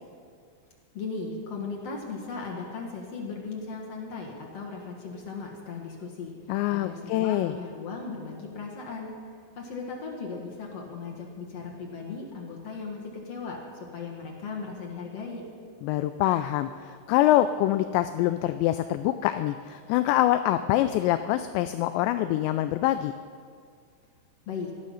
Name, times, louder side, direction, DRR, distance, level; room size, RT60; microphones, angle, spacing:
voice 1, 0.9-6.3 6.7-9.1 9.5-15.4 24.4-24.7, left 4 dB, 65° left, -1 dB, 1.6 m, -37 dB
voice 2, 6.5-7.5 15.8-23.1, left 13 dB, 85° left, 10 dB, 2.5 m, -25 dB
19.0 x 13.0 x 5.6 m, 2.1 s
omnidirectional pair, 5.5 m